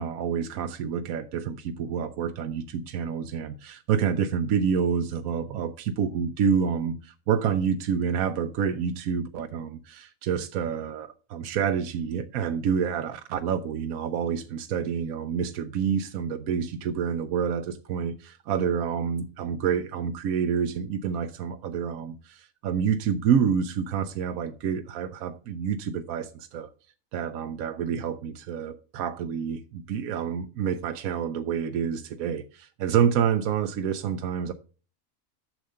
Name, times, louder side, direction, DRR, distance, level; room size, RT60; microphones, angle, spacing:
voice 1, 0.0-26.7 27.1-34.5, right 7 dB, 85° right, 1.1 m, -28 dB
7.5 x 6.6 x 5.5 m
omnidirectional pair, 1.5 m